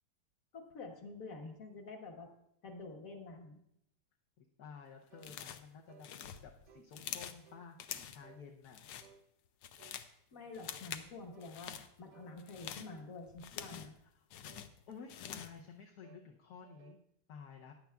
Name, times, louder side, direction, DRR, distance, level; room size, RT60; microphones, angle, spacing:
voice 1, 0.5-2.3 2.6-3.6 10.3-13.9, left 3 dB, 55° left, 3 dB, 1.7 m, -48 dB
voice 2, 4.4-8.8 14.1-14.3 14.9-17.0 17.3-17.7, left 6 dB, 70° left, 0 dB, 1.2 m, -53 dB
sound 1, 5.1-5.4 5.9-6.1 6.7-6.9 7.4-7.7 8.2-8.5 9.0-9.2 9.8-10.0 10.6-10.8 11.3-11.6 12.1-12.4 12.9-13.1 13.7-13.9 14.4-14.7 15.2-15.5 16.0-16.3 16.6-17.0, right 7 dB, 80° right, 1.2 m, -61 dB
sound 2, 5.2-5.7 6.0-7.4 7.8-8.3 8.6-9.1 9.5-10.1 10.5-11.1 11.4-11.9 12.4-14.0 14.3-15.6, left 9 dB, 90° left, 1.3 m, -46 dB
15.0 x 10.0 x 2.3 m, 0.77 s
omnidirectional pair, 1.9 m